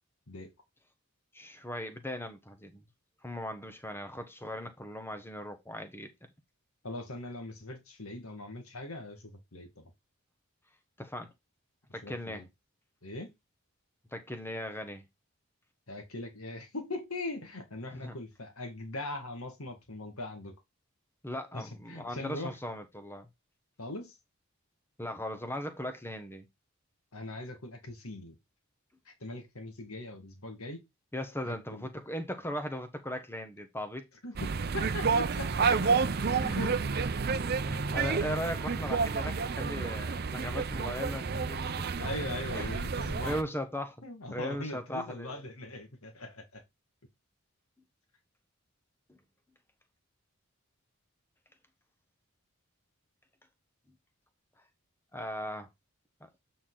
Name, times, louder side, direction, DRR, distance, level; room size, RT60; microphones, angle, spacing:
voice 1, 1.3-2.8 3.2-6.1 11.0-11.3 11.9-12.4 14.1-15.0 17.9-18.1 21.2-23.3 25.0-26.5 31.1-34.0 37.7-41.9 42.5-42.7 43.2-44.0 44.3-45.4 49.1-49.2 55.1-55.7, left 1 dB, 10° left, 1.0 m, -38 dB
voice 2, 6.8-9.9 12.0-12.5 13.0-13.3 15.9-20.5 21.5-22.6 23.8-24.1 27.1-28.4 29.1-30.8 31.5-31.9 34.2-36.1 36.4-36.8 37.1-37.2 42.0-43.4 44.0-46.6, left 2 dB, 80° left, 1.9 m, -41 dB
sound 1, 34.4-43.4, right 5 dB, 45° right, 0.6 m, -30 dB
8.3 x 4.3 x 3.9 m
head